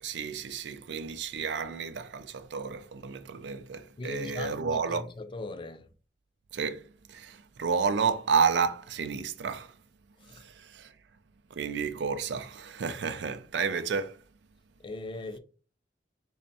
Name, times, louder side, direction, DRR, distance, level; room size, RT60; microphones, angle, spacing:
voice 1, 0.0-5.1 6.5-9.7 10.3-10.9 11.5-14.2, right 5 dB, 80° right, 0.4 m, -31 dB
voice 2, 4.0-5.9 10.2-10.4 14.8-15.4, left 2 dB, 30° left, 0.4 m, -39 dB
3.4 x 2.1 x 4.0 m
head